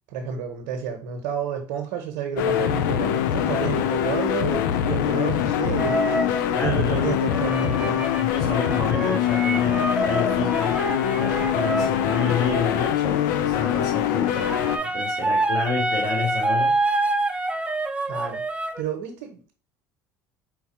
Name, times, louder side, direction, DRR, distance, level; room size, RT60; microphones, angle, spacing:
voice 1, 0.1-6.1 6.6-8.1 18.1-19.5, right 7 dB, 80° right, 4 dB, 0.8 m, -30 dB
sound 1, 2.4-14.8, left 10 dB, 85° left, 0.4 m, -23 dB
sound 2, 5.8-6.4 7.3-13.0 14.1-18.8, right 2 dB, 10° right, 0.5 m, -27 dB
voice 2, 6.5-7.1 8.1-10.8 11.1-14.7 14.9-16.8, left 5 dB, 40° left, -2 dB, 2.1 m, -29 dB
4.5 x 2.3 x 4.2 m, 0.39 s
supercardioid pair, 80°, 10 cm